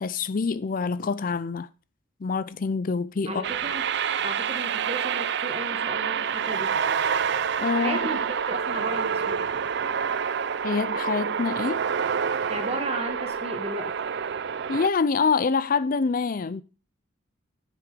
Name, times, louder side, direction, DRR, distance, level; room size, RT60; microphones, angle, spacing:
voice 1, 0.0-1.7 2.2-3.4 7.6-8.0 10.6-11.8 14.7-16.6, left 5 dB, 45° left, 0.4 m, -26 dB
voice 2, 3.3-3.9 4.2-6.8 7.7-9.4 12.5-13.9, right 2 dB, 30° right, 1.9 m, -34 dB
sound 1, 3.4-14.9, right 7 dB, 60° right, 0.5 m, -27 dB
9.8 x 7.5 x 5.0 m
head